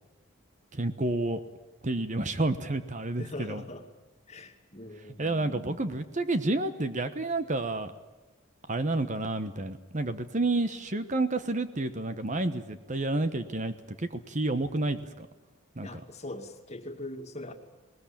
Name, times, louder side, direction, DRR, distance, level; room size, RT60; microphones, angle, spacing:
voice 1, 0.7-1.4 1.8-3.6 5.2-7.9 8.7-15.3 15.8-16.0, right 2 dB, 35° right, 10 dB, 1.2 m, -30 dB
voice 2, 3.2-3.8 4.3-5.8 15.8-17.5, left 1 dB, 30° left, 5 dB, 2.2 m, -41 dB
20.0 x 20.0 x 8.8 m, 1.2 s
head